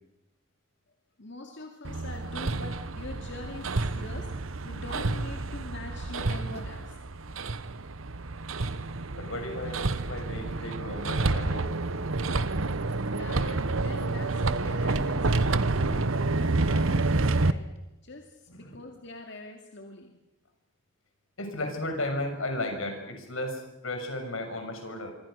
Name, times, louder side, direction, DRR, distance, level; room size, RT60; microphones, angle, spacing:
voice 1, 1.2-7.0 13.0-17.7 18.0-20.1, left 2 dB, 60° left, 3 dB, 2.5 m, -44 dB
Hammer, 1.8-17.5, right 3 dB, 90° right, 1.1 m, -29 dB
voice 2, 9.2-11.7 18.5-18.8 21.4-25.1, left 1 dB, 90° left, 5 dB, 6.1 m, -34 dB
26.5 x 25.0 x 6.5 m, 0.93 s
head